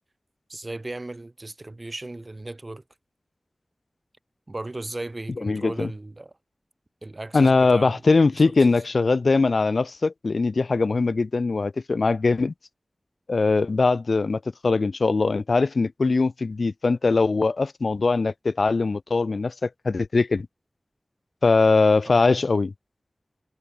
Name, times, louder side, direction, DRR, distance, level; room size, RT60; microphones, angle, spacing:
voice 1, 0.5-2.8 4.5-6.3 7.0-8.0 8.6-8.7 22.0-22.2, right 2 dB, 40° right, 3.5 m, -36 dB
voice 2, 5.4-5.9 7.3-12.5 13.3-20.5 21.4-22.7, left 3 dB, 75° left, 1.7 m, -21 dB
wide cardioid pair, 70°, 0 cm